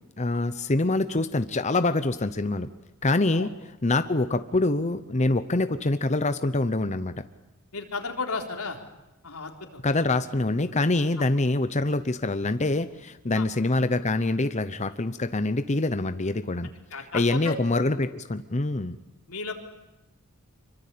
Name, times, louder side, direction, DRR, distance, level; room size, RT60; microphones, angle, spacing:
voice 1, 0.2-2.7 3.0-3.5 3.8-7.2 9.8-19.0, left 2 dB, 30° left, 10 dB, 0.9 m, -25 dB
voice 2, 7.7-8.8 9.2-9.5 11.2-11.3 13.3-13.5 16.9-17.6 19.3-19.5, left 4 dB, 90° left, 3 dB, 4.0 m, -33 dB
26.5 x 24.0 x 8.6 m, 1.0 s
head